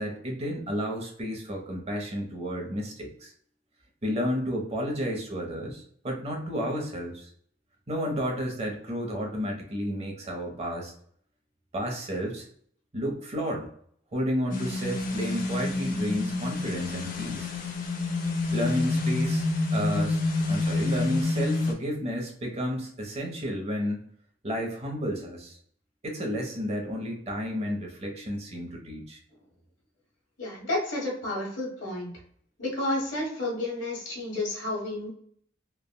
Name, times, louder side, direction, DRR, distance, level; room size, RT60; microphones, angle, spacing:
voice 1, 0.0-3.3 4.0-7.3 7.9-10.9 11.7-12.5 12.9-13.7 14.1-17.5 18.5-20.2 20.5-24.1 24.4-25.6 26.0-29.2, equal, 35° right, 1 dB, 0.6 m, -31 dB
sound 1, 14.5-21.7, left 2 dB, 45° left, 0.5 m, -28 dB
voice 2, 30.4-32.1 32.6-35.1, left 1 dB, 75° left, -3 dB, 1.3 m, -31 dB
3.3 x 2.1 x 2.2 m, 0.62 s
head